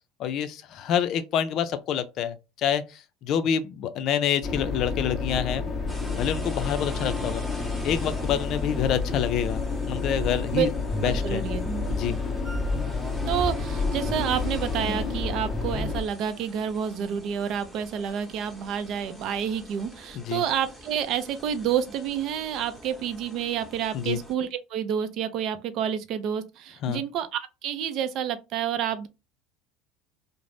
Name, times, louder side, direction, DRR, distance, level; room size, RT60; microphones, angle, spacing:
voice 1, 0.2-5.7 6.1-7.4 7.8-10.7 11.0-11.4 11.9-12.2 20.1-20.4 23.9-24.2 26.8-27.0, left 9 dB, 55° left, 0.4 m, -27 dB
sound 1, 4.4-16.0, left 4 dB, 25° left, 0.8 m, -30 dB
sound 2, 5.9-24.3, equal, ahead, 0.9 m, -44 dB
sound 3, 9.6-16.1, equal, 30° right, 1.0 m, -35 dB
voice 2, 11.0-11.7 13.3-29.1, right 9 dB, 55° right, 0.5 m, -29 dB
2.5 x 2.0 x 3.2 m
supercardioid pair, 95°, 0 cm